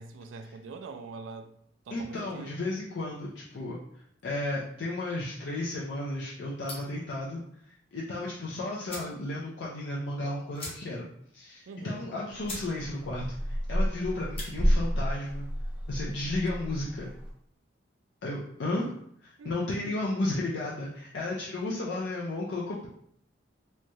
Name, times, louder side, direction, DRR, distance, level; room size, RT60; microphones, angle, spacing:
voice 1, 0.0-1.5 1.9-2.6 11.7-12.1 18.7-18.9 19.4-19.9, right 4 dB, 80° right, 0.3 m, -44 dB
voice 2, 1.9-3.8 4.2-7.4 7.9-11.1 11.3-15.5 15.9-17.1 18.2-18.9 19.2-22.9, left 2 dB, 65° left, 0.5 m, -33 dB
sound 1, 6.6-7.0 8.4-8.5 8.8-9.2 9.6-9.7 9.9-10.0 10.5-11.1 11.5-11.6 12.1-12.2 12.4-12.7 13.1-13.4 14.2-14.5, left 2 dB, 30° left, 0.8 m, -41 dB
sound 2, 12.3-17.3, equal, 5° right, 0.4 m, -31 dB
3.1 x 2.2 x 2.6 m
head